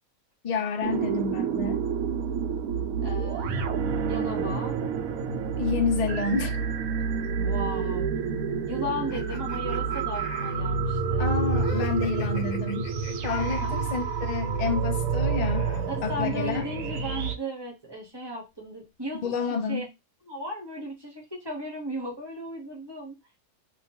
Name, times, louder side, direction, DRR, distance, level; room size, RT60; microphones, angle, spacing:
voice 1, 0.4-1.9 5.6-6.6 11.2-12.9 13.2-15.7 16.0-16.6 19.2-19.8, left 5 dB, 55° left, 0.4 m, -29 dB
sound 1, 0.8-17.4, right 5 dB, 80° right, 1.0 m, -28 dB
voice 2, 3.0-3.7 4.1-4.8 7.4-8.1 8.7-11.3 13.4-13.8 15.9-19.2 19.7-19.8 20.3-23.2, equal, 20° right, 0.8 m, -36 dB
sound 2, 9.1-13.8 15.0-16.7, left 5 dB, 85° left, 1.2 m, -45 dB
2.8 x 2.2 x 2.8 m
omnidirectional pair, 1.5 m